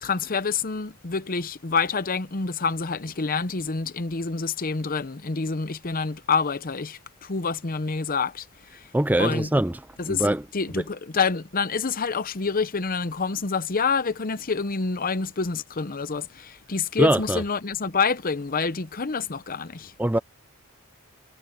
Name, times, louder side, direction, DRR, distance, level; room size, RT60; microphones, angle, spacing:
voice 1, 0.0-8.5 8.7-8.9 9.2-9.5 10.0-10.2 10.5-19.9, left 5 dB, 40° left, 0.8 m, -27 dB
voice 2, 8.9-9.8 10.1-10.4 10.7-10.8 17.0-17.4 20.0-20.2, right 1 dB, 10° right, 0.5 m, -22 dB
head